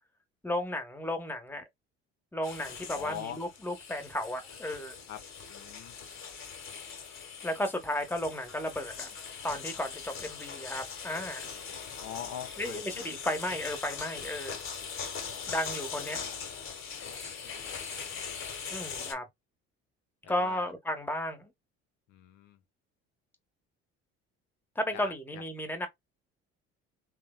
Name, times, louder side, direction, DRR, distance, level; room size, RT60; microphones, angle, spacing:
voice 1, 0.4-1.6 2.3-4.9 7.4-9.1 9.4-11.5 12.6-14.6 15.5-16.2 18.7-19.3 20.3-21.5 24.7-25.9, left 1 dB, 5° left, 1.1 m, -34 dB
sound 1, 2.4-19.1, left 6 dB, 40° left, 1.0 m, -41 dB
voice 2, 2.9-3.4 5.1-5.2 5.5-6.0 12.0-13.0 15.2-15.5 16.1-16.4 17.0-18.1 20.2-20.7 22.1-22.6 24.9-25.4, left 10 dB, 60° left, 0.6 m, -44 dB
3.2 x 2.1 x 2.2 m
hypercardioid pair, 65°, 32 cm